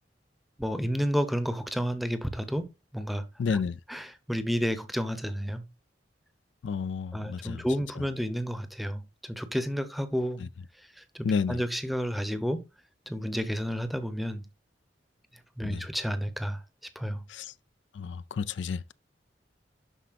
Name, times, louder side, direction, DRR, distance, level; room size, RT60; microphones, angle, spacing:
voice 1, 0.6-2.7 2.9-3.2 3.5-3.6 3.9-5.6 7.1-10.4 11.1-12.6 13.1-14.4 15.6-16.6 17.0-17.2, equal, ahead, 0.7 m, -31 dB
voice 2, 3.4-3.8 6.6-7.6 8.0-8.1 10.4-10.5 11.2-11.6 15.6-15.8 17.3-17.5 17.9-18.9, left 5 dB, 90° left, 0.4 m, -31 dB
11.5 x 4.2 x 2.4 m
head